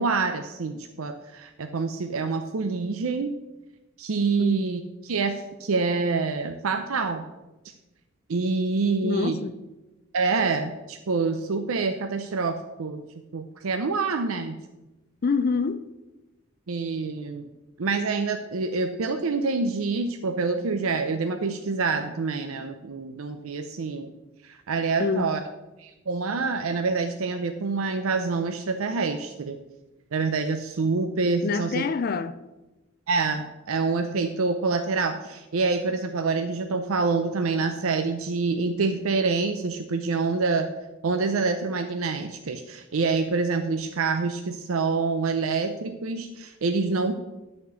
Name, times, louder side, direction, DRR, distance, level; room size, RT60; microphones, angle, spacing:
voice 1, 0.0-3.3 4.0-7.2 8.3-9.4 10.1-13.0 13.3-14.6 16.7-17.5 17.8-24.1 24.4-25.4 25.8-29.6 30.1-31.8 33.1-40.7 41.0-47.1, right 4 dB, 85° right, 0.6 m, -26 dB
voice 2, 9.0-9.6 15.2-15.9 25.0-25.4 31.4-32.4, left 4 dB, 45° left, 0.4 m, -26 dB
11.0 x 4.4 x 6.8 m
head